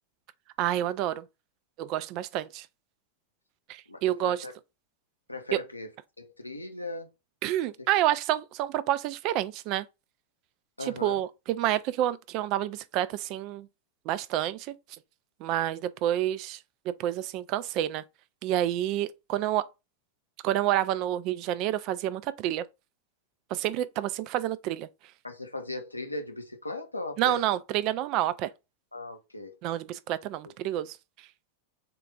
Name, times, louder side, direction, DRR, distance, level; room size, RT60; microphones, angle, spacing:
voice 1, 0.6-1.2 1.8-2.7 3.7-4.4 5.5-5.6 7.4-9.9 10.8-13.7 14.1-14.7 15.4-16.6 16.9-18.0 18.4-19.7 20.4-22.7 23.5-24.9 27.2-28.5 29.6-31.0, right 13 dB, 40° right, 0.3 m, -28 dB
voice 2, 3.9-4.5 5.3-5.9 6.2-7.1 10.8-11.2 25.2-27.4 28.9-29.6 30.4-30.5, left 2 dB, 85° left, 0.7 m, -38 dB
3.7 x 2.4 x 3.5 m
figure-of-eight pair, 90°, 0 cm